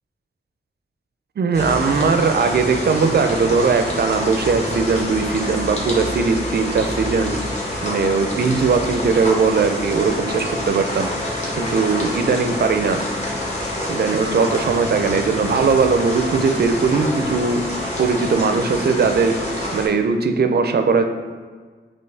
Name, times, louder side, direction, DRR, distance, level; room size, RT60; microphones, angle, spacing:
voice 1, 1.4-7.4 7.8-13.0 13.9-17.6 18.0-19.3 19.7-21.0, right 5 dB, 50° right, 6 dB, 0.4 m, -19 dB
sound 1, 1.5-19.9, left 1 dB, 35° left, 1.1 m, -27 dB
4.3 x 3.1 x 3.3 m, 1.5 s
wide cardioid pair, 75°, 21 cm